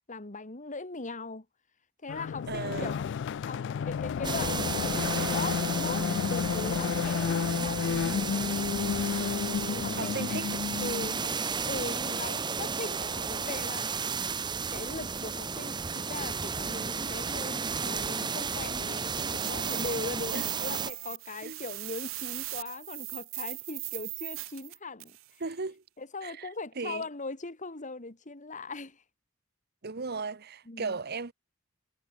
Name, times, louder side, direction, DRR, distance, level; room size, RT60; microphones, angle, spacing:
voice 1, 0.1-1.5 2.0-3.1 3.5-8.7 9.7-10.4 10.8-13.9 14.7-25.2 26.0-29.0 30.7-31.0, left 3 dB, 40° left, 2.0 m, -40 dB
sound 1, 2.1-11.3, left 7 dB, 60° left, 0.3 m, -31 dB
voice 2, 2.5-3.0 10.0-10.6 20.3-20.4 21.4-21.6 25.4-25.8 26.2-26.5 26.8-27.1 29.8-31.3, right 4 dB, 55° right, 1.0 m, -36 dB
sound 2, 4.2-20.9, right 5 dB, 20° right, 0.7 m, -33 dB
sound 3, 18.7-25.3, right 20 dB, 80° right, 0.6 m, -39 dB
head